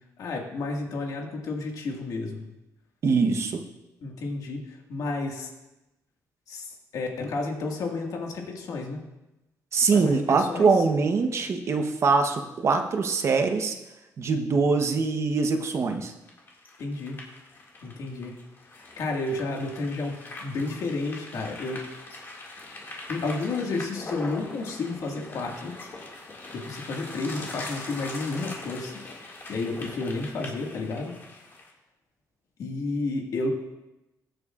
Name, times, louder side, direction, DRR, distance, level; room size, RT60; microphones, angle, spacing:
voice 1, 0.2-2.5 4.0-5.5 6.5-9.0 9.9-10.7 16.8-17.2 17.8-18.3 19.0-21.8 23.1-25.7 26.5-28.9 29.5-31.1 32.6-33.5, left 3 dB, 70° left, 1 dB, 1.9 m, -31 dB
voice 2, 3.0-3.6 9.7-13.8 14.2-16.1, right 4 dB, 45° right, 6 dB, 1.0 m, -23 dB
sound 1, 16.3-31.7, left 2 dB, 35° left, 2.1 m, -42 dB
20.5 x 8.0 x 2.5 m, 0.98 s
cardioid pair, 125°, 6 cm